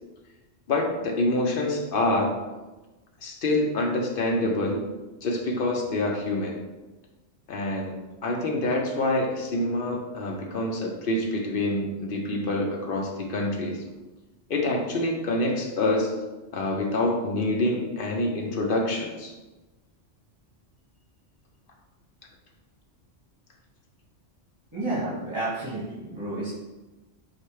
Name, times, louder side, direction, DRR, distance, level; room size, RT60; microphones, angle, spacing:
voice 1, 0.7-2.4 3.2-4.8 5.2-6.6 7.5-13.8 14.5-16.1 16.5-19.3, left 2 dB, 55° left, 1 dB, 0.8 m, -26 dB
voice 2, 24.7-26.5, right 2 dB, 25° right, -11 dB, 1.2 m, -30 dB
4.3 x 2.5 x 4.6 m, 1.1 s
omnidirectional pair, 1.2 m